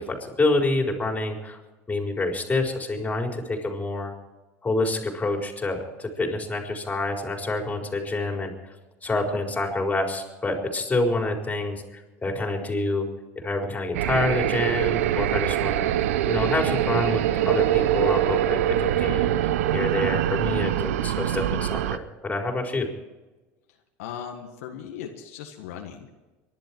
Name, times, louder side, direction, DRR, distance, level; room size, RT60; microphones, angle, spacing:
voice 1, 0.0-1.6 1.9-4.1 4.6-8.5 9.0-13.1 13.4-15.9 16.2-22.9, left 2 dB, 20° left, 2 dB, 4.5 m, -27 dB
sound 1, 13.9-22.0, right 12 dB, 90° right, 0.6 m, -24 dB
voice 2, 24.0-26.1, left 8 dB, 85° left, 3 dB, 1.7 m, -38 dB
24.5 x 11.5 x 4.6 m, 1.2 s
supercardioid pair, 90°, 7 cm